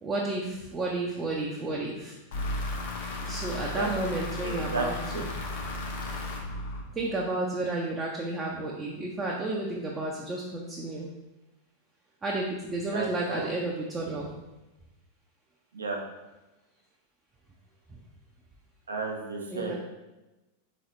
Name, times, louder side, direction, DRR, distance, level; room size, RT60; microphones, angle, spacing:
voice 1, 0.0-2.1 3.2-5.3 5.7-5.8 6.9-11.1 12.2-14.3 17.9-18.0 19.4-19.7, right 2 dB, 20° right, -3 dB, 0.6 m, -32 dB
sound 1, 2.3-7.2, left 2 dB, 55° left, 0.8 m, -35 dB
voice 2, 3.5-3.9 4.4-5.2 12.9-13.5 15.7-16.0 18.9-19.7, right 3 dB, 75° right, 1 dB, 0.8 m, -33 dB
3.9 x 3.2 x 4.1 m, 1.0 s
figure-of-eight pair, 90°, 0 cm